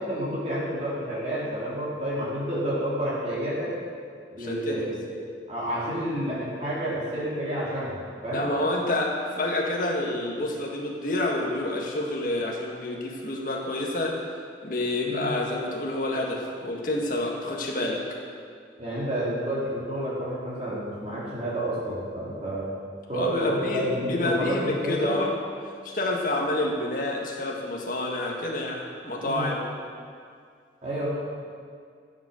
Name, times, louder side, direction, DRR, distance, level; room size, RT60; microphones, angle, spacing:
voice 1, 0.0-3.7 4.3-5.1 5.5-8.5 15.0-15.3 18.8-22.7 23.1-25.1 29.2-29.5 30.8-31.1, right 1 dB, 35° right, -8 dB, 3.0 m, -30 dB
voice 2, 4.4-4.9 8.3-14.3 14.6-18.0 23.1-25.3 25.6-29.6, left 1 dB, 50° left, -1 dB, 1.8 m, -28 dB
14.0 x 8.3 x 6.6 m, 2.2 s
head